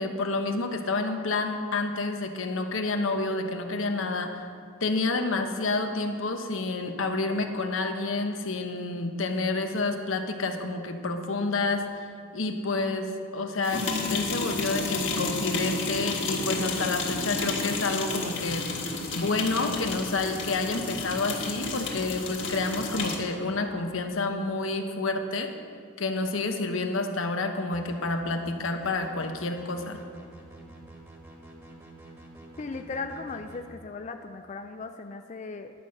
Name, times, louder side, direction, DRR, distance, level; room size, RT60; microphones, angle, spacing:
voice 1, 0.0-4.5 4.8-11.8 12.3-18.7 19.1-25.5 26.0-30.0, left 3 dB, 85° left, 5 dB, 1.0 m, -29 dB
sound 1, 13.6-23.3, left 3 dB, 65° left, 1.7 m, -31 dB
sound 2, 27.7-33.6, right 1 dB, 10° right, 1.5 m, -48 dB
voice 2, 32.6-35.7, left 3 dB, 35° left, 6 dB, 0.4 m, -37 dB
11.5 x 5.6 x 7.7 m, 2.2 s
head